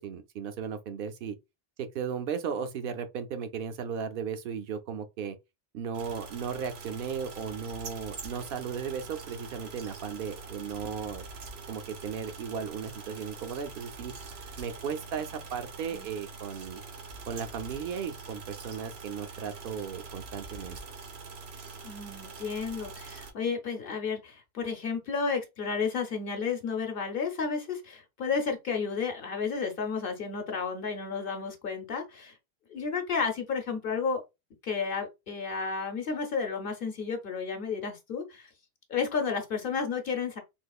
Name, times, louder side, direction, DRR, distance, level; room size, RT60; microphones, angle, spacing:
voice 1, 0.0-1.4 1.8-5.4 5.7-11.2 11.7-14.1 14.6-16.8 17.3-20.8, right 7 dB, 65° right, 0.7 m, -36 dB
sound 1, 5.9-23.3, right 4 dB, 90° right, 1.0 m, -44 dB
voice 2, 21.8-32.4 32.7-34.2 34.6-38.5 38.9-40.4, left 5 dB, 65° left, 0.9 m, -32 dB
3.5 x 2.8 x 2.3 m
omnidirectional pair, 1.0 m